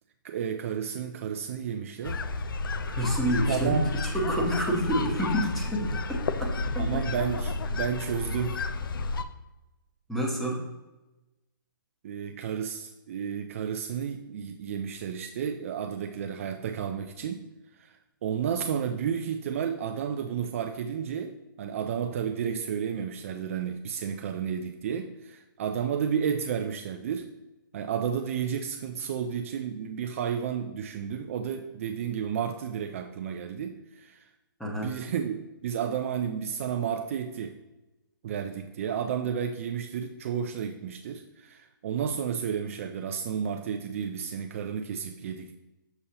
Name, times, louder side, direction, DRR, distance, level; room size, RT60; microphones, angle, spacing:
voice 1, 0.2-2.2 3.5-3.9 5.8-6.0 6.8-8.6 12.0-17.4 17.7-21.3 21.6-27.3 27.7-34.3 34.7-37.5 38.2-45.6, right 8 dB, 40° right, 5 dB, 0.4 m, -32 dB
sound 1, 2.0-9.2, left 3 dB, 70° left, 0.5 m, -31 dB
voice 2, 2.8-3.8 4.0-7.0 10.1-10.6 34.6-34.9, equal, ahead, -2 dB, 0.9 m, -29 dB
6.7 x 5.5 x 2.8 m, 1.0 s
hypercardioid pair, 155°, 12 cm